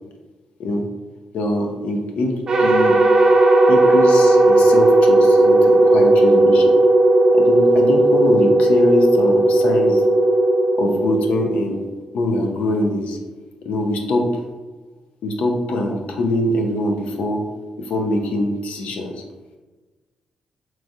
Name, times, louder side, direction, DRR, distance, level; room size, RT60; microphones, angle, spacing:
voice 1, 1.3-3.0 3.7-6.8 7.3-10.0 10.8-11.8 12.1-13.2 13.6-14.3 15.2-17.4 17.8-19.2, left 1 dB, 80° left, 2 dB, 0.6 m, -23 dB
sound 1, 2.5-11.8, right 1 dB, 35° right, 0.4 m, -15 dB
5.2 x 3.1 x 2.4 m, 1.3 s
wide cardioid pair, 165°, 2 cm